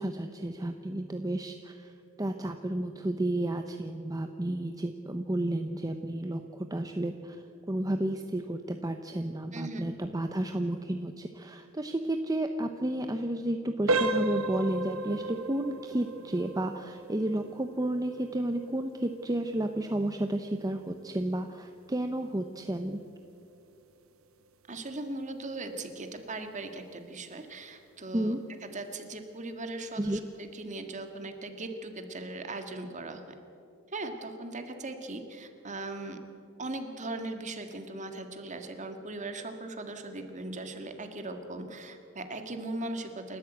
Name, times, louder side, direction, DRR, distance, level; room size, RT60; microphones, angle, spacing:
voice 1, 0.0-1.9 2.2-23.0 28.1-28.4 30.0-30.2, right 1 dB, 15° right, 6 dB, 0.7 m, -32 dB
voice 2, 9.5-9.9 24.7-28.3 28.6-33.2 33.9-36.2 36.6-43.4, right 2 dB, 35° right, 6 dB, 1.9 m, -39 dB
sound 1, 13.9-24.5 24.9-25.1 25.7-25.8 26.3-26.5, right 2 dB, 80° right, 1.2 m, -36 dB
29.0 x 13.5 x 8.0 m, 2.7 s
head